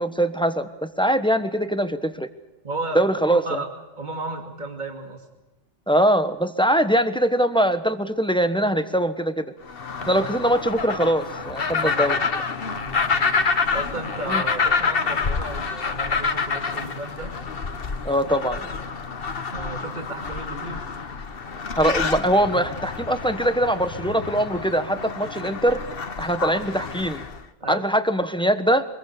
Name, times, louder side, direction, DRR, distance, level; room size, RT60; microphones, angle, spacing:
voice 1, 0.0-2.3 2.9-3.6 5.9-9.4 10.1-12.2 14.3-14.4 18.0-18.6 21.8-25.8 26.2-27.3 27.7-28.9, right 1 dB, 5° left, 9 dB, 1.2 m, -22 dB
voice 2, 2.6-3.7 4.0-5.2 10.0-10.3 11.8-12.2 12.7-13.3 13.7-17.3 19.3-20.8 27.6-27.9, right 2 dB, 40° right, 3 dB, 2.6 m, -34 dB
sound 1, 9.7-27.4, left 5 dB, 50° left, 1.4 m, -28 dB
25.0 x 21.5 x 6.9 m, 1.1 s
omnidirectional pair, 1.2 m